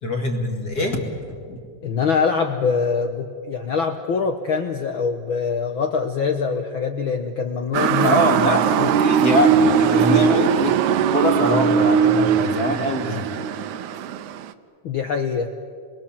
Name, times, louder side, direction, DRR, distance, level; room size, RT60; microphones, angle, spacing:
voice 1, 0.0-1.1 1.4-1.6 8.0-10.8 11.1-13.3, equal, 30° left, 2 dB, 2.4 m, -23 dB
voice 2, 1.8-8.2 8.8-8.9 14.8-15.5, left 5 dB, 85° left, 6 dB, 1.1 m, -23 dB
Motor vehicle (road) / Siren, 7.7-14.5, right 7 dB, 75° right, 2.0 m, -19 dB
28.0 x 23.0 x 7.4 m, 2.4 s
omnidirectional pair, 3.7 m